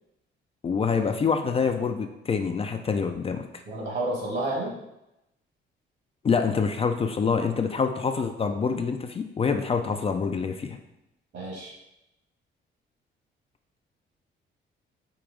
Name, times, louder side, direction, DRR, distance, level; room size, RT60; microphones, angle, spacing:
voice 1, 0.6-3.5 6.2-10.8, left 5 dB, 30° left, 6 dB, 0.3 m, -26 dB
voice 2, 3.6-4.7 11.3-11.8, right 1 dB, 60° right, -2 dB, 1.7 m, -30 dB
4.8 x 3.0 x 3.6 m, 0.88 s
cardioid pair, 90°, 20 cm